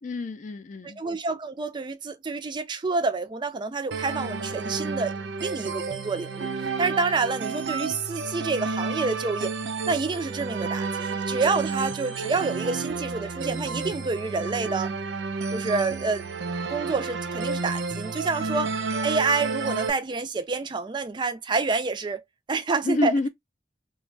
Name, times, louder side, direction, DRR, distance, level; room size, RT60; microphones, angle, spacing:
voice 1, 0.0-1.0 22.8-23.3, left 2 dB, 45° left, 0.4 m, -27 dB
voice 2, 0.8-9.5 9.9-14.9 15.5-16.2 16.7-18.8 19.0-22.2 22.5-23.1, right 4 dB, 25° right, 0.4 m, -28 dB
sound 1, 3.9-19.9, right 4 dB, 85° right, 0.5 m, -31 dB
2.5 x 2.2 x 3.1 m
head